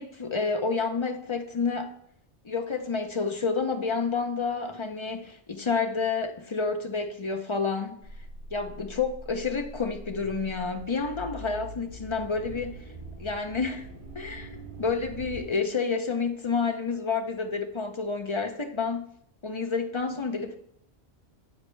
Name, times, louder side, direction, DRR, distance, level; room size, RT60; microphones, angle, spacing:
voice 1, 0.0-1.9 2.4-8.0 8.5-12.8 13.2-13.9 14.2-19.1 19.4-20.6, left 4 dB, 40° left, 0.4 m, -29 dB
sound 1, 8.0-15.4, right 1 dB, 60° right, 2.4 m, -43 dB
9.5 x 4.3 x 3.1 m
omnidirectional pair, 1.1 m